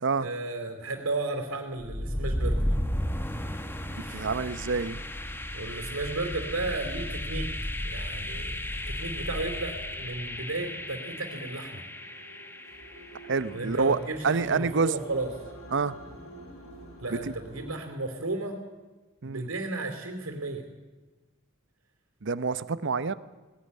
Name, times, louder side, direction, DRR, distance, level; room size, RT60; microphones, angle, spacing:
voice 1, 0.2-2.6 4.0-4.3 5.5-7.5 7.8-8.6 8.9-11.8 13.5-15.3 17.0-18.6 19.2-20.6, right 2 dB, 90° right, 2 dB, 3.4 m, -33 dB
sound 1, 1.8-13.7, left 1 dB, 10° left, 1.2 m, -34 dB
voice 2, 3.9-5.0 13.3-14.0 14.2-15.0 15.7-15.9 17.1-17.3 19.2-19.5 22.2-23.1, right 4 dB, 60° right, 15 dB, 0.8 m, -27 dB
sound 2, 8.7-17.7, right 1 dB, 80° left, 6.9 m, -48 dB
19.0 x 17.0 x 9.7 m, 1.2 s
head